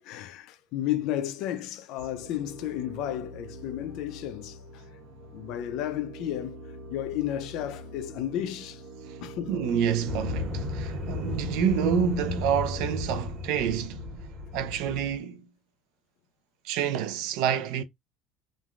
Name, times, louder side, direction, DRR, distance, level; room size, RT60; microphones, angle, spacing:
voice 1, 0.1-4.6 5.3-6.6 6.9-8.8 9.2-9.5 11.3-11.4, left 12 dB, 55° left, 0.3 m, -32 dB
sound 1, 2.0-14.0, equal, 85° right, 1.0 m, -44 dB
voice 2, 9.5-14.0 14.5-15.5 16.6-17.8, right 8 dB, 65° right, 0.4 m, -28 dB
sound 2, 10.0-15.1, left 3 dB, 20° right, 0.8 m, -35 dB
3.1 x 2.1 x 2.4 m
cardioid pair, 175°, 0 cm